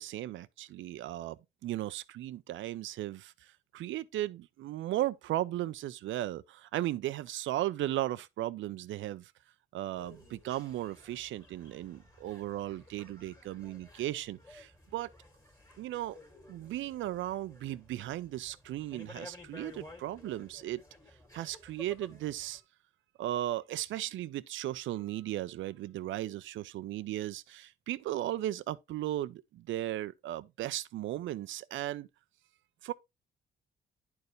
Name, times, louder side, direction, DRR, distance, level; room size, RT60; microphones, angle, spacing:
voice 1, 0.0-9.3 9.7-15.1 15.8-16.2 16.5-20.8 21.3-22.6 23.2-32.1 32.8-32.9, right 14 dB, 75° right, 0.5 m, -36 dB
sound 1, 9.9-22.6, left 2 dB, 15° left, 2.0 m, -54 dB
10.5 x 4.5 x 3.2 m
cardioid pair, 90°, 20 cm